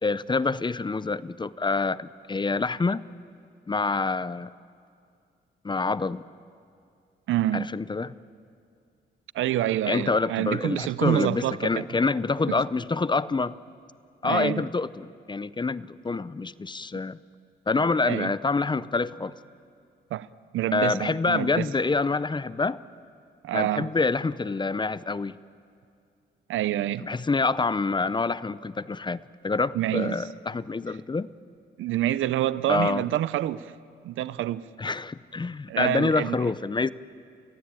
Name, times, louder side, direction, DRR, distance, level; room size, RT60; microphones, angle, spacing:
voice 1, 0.0-3.0 3.7-4.5 5.6-6.2 7.5-8.1 9.9-13.5 14.2-17.2 17.7-19.3 20.7-22.8 23.5-25.4 27.0-31.3 32.7-33.0 34.8-36.9, left 3 dB, 25° left, 0.6 m, -26 dB
voice 2, 7.3-7.7 9.3-11.8 12.5-12.6 14.2-14.7 17.8-18.3 20.1-20.3 20.5-21.7 23.4-23.9 26.5-27.1 29.7-30.3 31.8-33.7 34.0-34.6 35.7-36.4, right 13 dB, 80° right, 0.6 m, -27 dB
29.0 x 15.5 x 9.0 m
cardioid pair, 70°, 20 cm